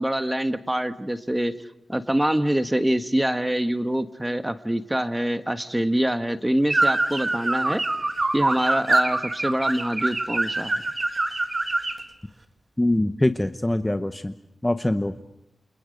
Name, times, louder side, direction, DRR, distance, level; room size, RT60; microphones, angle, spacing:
voice 1, 0.0-1.5 1.9-7.8 8.3-10.8, right 1 dB, 10° right, 10 dB, 1.2 m, -25 dB
sound 1, 6.7-12.0, right 2 dB, 30° right, 1.8 m, -24 dB
voice 2, 12.8-14.3 14.6-15.1, left 1 dB, 10° left, 9 dB, 0.8 m, -23 dB
29.5 x 28.0 x 5.2 m, 0.82 s
wide cardioid pair, 130°, 0 cm